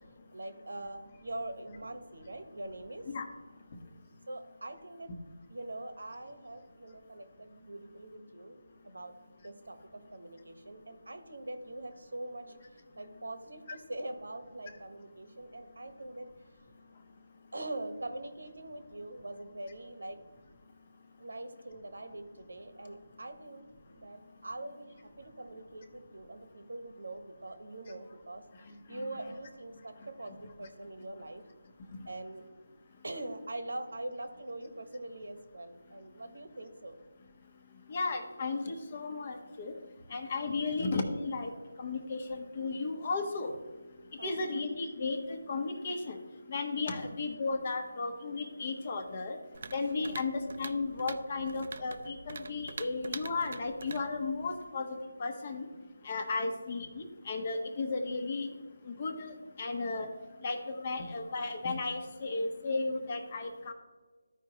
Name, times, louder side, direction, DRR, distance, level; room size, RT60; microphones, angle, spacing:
voice 1, 0.3-3.1 4.3-5.1 5.5-8.6 8.8-9.2 9.4-12.5 12.9-16.3 17.5-20.2 21.2-23.6 23.9-28.4 28.9-31.4 32.0-32.4 33.0-37.0 44.2-44.6 47.0-47.1 50.0-50.2 56.4-56.6, right 1 dB, 80° right, 8 dB, 1.2 m, -43 dB
voice 2, 37.9-39.7 40.1-41.5 41.8-43.5 44.2-46.2 46.5-49.4 49.7-54.9 55.2-55.6 56.0-58.5 59.0-60.1 60.4-63.7, left 3 dB, 35° left, 6 dB, 1.1 m, -34 dB
sound 1, 49.5-54.7, right 4 dB, 50° right, 0.4 m, -45 dB
14.0 x 4.9 x 3.0 m, 1.3 s
figure-of-eight pair, 165°, 0 cm